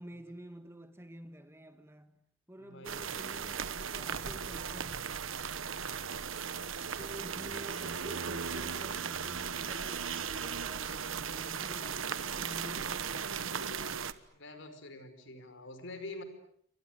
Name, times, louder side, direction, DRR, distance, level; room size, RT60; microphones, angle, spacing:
voice 1, 0.0-2.2 2.5-5.4 7.0-14.0, right 1 dB, 15° right, 1.7 m, -49 dB
voice 2, 2.6-3.1 5.8-6.1 14.3-16.2, left 2 dB, 65° left, 5.1 m, -47 dB
sound 1, 2.8-14.1, right 6 dB, 70° right, 1.3 m, -37 dB
29.5 x 25.0 x 7.9 m
head